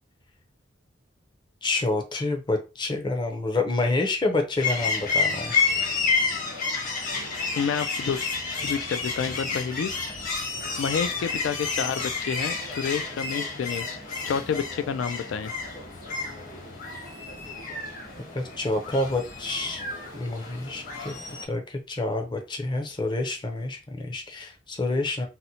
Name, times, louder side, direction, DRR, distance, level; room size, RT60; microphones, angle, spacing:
voice 1, 1.6-5.6 18.3-19.8 20.1-21.2 21.5-25.3, left 2 dB, 25° left, 0.5 m, -28 dB
sound 1, 4.6-21.4, left 4 dB, 45° left, 0.9 m, -30 dB
voice 2, 7.6-8.2 8.6-9.9 10.8-14.0 14.2-15.5, left 6 dB, 85° left, 0.3 m, -29 dB
4.0 x 2.0 x 2.7 m
head